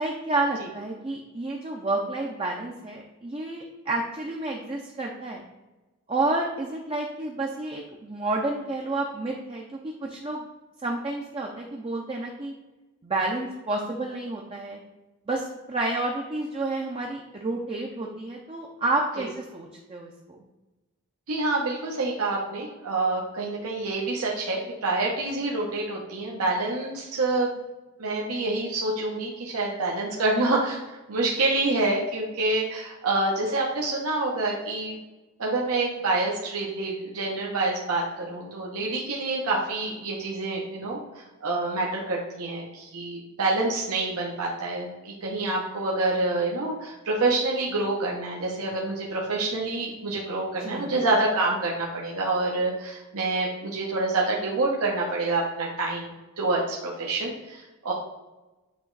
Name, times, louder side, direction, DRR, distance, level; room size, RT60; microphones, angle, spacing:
voice 1, 0.0-5.4 6.1-10.4 10.8-12.5 13.0-14.8 15.3-20.4 50.6-50.9, right 2 dB, 25° right, 0 dB, 0.5 m, -30 dB
voice 2, 21.3-27.5 28.0-30.8 31.1-35.0 35.4-57.9, right 2 dB, 75° right, -3 dB, 0.9 m, -27 dB
8.2 x 3.0 x 3.9 m, 1.1 s
head